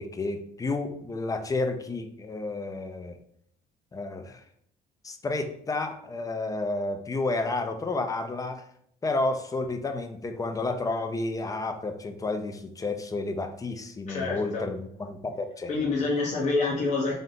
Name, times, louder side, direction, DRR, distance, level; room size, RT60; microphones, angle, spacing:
voice 1, 0.0-3.2 3.9-4.4 5.0-8.7 9.0-15.8, left 2 dB, 20° left, 7 dB, 0.5 m, -31 dB
voice 2, 14.1-14.6 15.7-17.1, left 3 dB, 45° left, -4 dB, 1.1 m, -27 dB
3.5 x 2.7 x 3.9 m, 0.68 s
cardioid pair, 110°, 17 cm